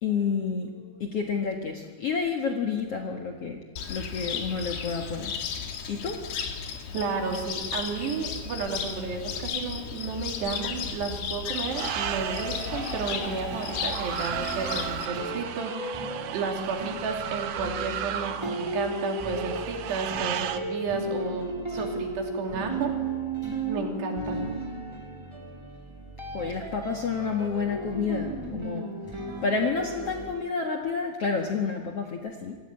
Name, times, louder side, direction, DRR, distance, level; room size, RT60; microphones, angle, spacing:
voice 1, 0.0-3.6 3.9-5.3 5.9-6.2 26.3-28.9 29.4-32.6, left 5 dB, 85° left, 2 dB, 1.3 m, -29 dB
Cricket, 3.8-15.1, left 7 dB, 60° left, 3.4 m, -35 dB
voice 2, 6.9-16.0 16.3-22.9 23.7-24.5, right 5 dB, 65° right, 2 dB, 4.6 m, -32 dB
sound 1, 11.7-20.6, right 10 dB, 90° right, 1.8 m, -35 dB
sound 2, 12.1-30.3, right 2 dB, 30° right, 0.4 m, -35 dB
27.0 x 16.5 x 8.8 m, 1.5 s
omnidirectional pair, 5.5 m